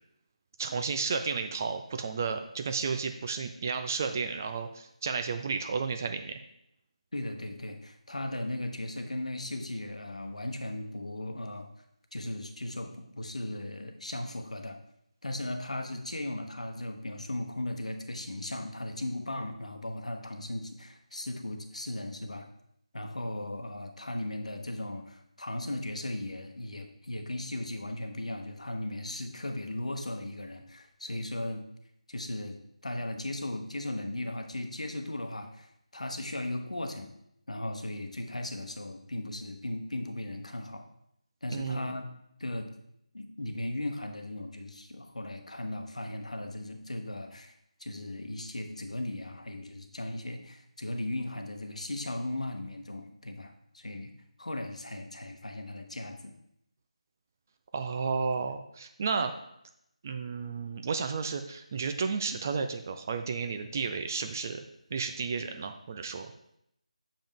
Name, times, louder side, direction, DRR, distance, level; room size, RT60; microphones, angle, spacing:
voice 1, 0.6-6.4 41.5-41.9 57.7-59.3 60.0-64.6 64.9-66.3, right 5 dB, 25° right, 7 dB, 0.4 m, -32 dB
voice 2, 7.1-11.7 12.1-14.8 15.2-22.5 22.9-31.7 32.1-32.6 32.8-37.1 37.5-40.8 41.4-42.1 42.4-42.7 43.1-47.5 47.8-54.1 54.4-56.3, left 1 dB, 65° left, 6 dB, 1.0 m, -37 dB
7.5 x 5.1 x 3.6 m, 0.76 s
figure-of-eight pair, 160°, 4 cm